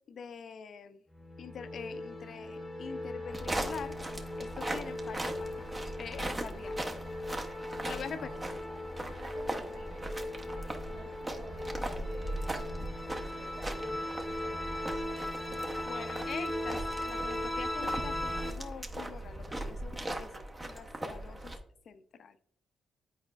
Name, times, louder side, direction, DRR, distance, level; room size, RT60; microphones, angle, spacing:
voice 1, 0.1-1.0 1.4-4.0 4.4-5.5 6.0-6.8 7.8-8.3 15.9-20.3 20.6-21.5 21.9-22.4, left 6 dB, 55° left, 11 dB, 0.4 m, -44 dB
sound 1, 1.1-18.5, left 1 dB, 15° left, 0.8 m, -39 dB
sound 2, 3.3-21.6, right 1 dB, 20° right, 0.6 m, -39 dB
voice 2, 8.1-8.4 9.0-12.5 13.4-15.0, right 2 dB, 75° right, 1 dB, 1.4 m, -51 dB
8.8 x 4.8 x 2.3 m, 0.69 s
cardioid pair, 120°, 0 cm